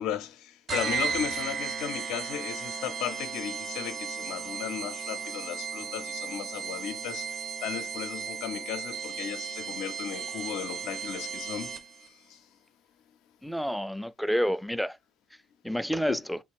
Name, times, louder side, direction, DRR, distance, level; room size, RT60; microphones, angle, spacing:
voice 1, 0.0-12.5 16.1-16.2, left 10 dB, 80° left, 0.5 m, -36 dB
sound 1, 0.7-12.1, right 6 dB, 55° right, 0.5 m, -35 dB
voice 2, 13.4-15.0 15.6-16.4, equal, ahead, 0.3 m, -29 dB
3.5 x 2.5 x 3.4 m
supercardioid pair, 70°, 0 cm